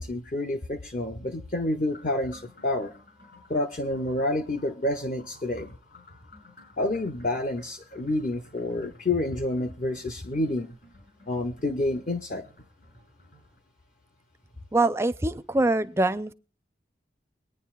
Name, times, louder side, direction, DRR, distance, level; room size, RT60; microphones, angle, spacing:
voice 1, 0.0-2.9 3.5-5.8 6.8-10.8 11.3-12.4, left 2 dB, 45° left, 0.7 m, -29 dB
sound 1, 1.9-13.6, left 2 dB, 65° left, 6.6 m, -55 dB
voice 2, 14.7-16.3, right 2 dB, 15° right, 0.4 m, -24 dB
23.5 x 9.6 x 2.4 m
head